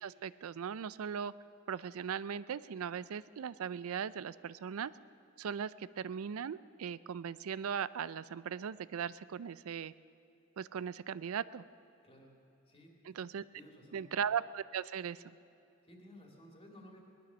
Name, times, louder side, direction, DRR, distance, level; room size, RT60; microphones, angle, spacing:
voice 1, 0.0-1.3 1.7-4.9 5.4-9.9 10.6-11.6 13.2-13.4 13.9-15.4, right 7 dB, 80° right, 18 dB, 0.4 m, -38 dB
voice 2, 12.0-12.4 12.7-13.3 13.6-14.2 15.8-17.1, equal, 30° left, 0 dB, 2.5 m, -56 dB
19.0 x 12.0 x 6.2 m, 2.8 s
head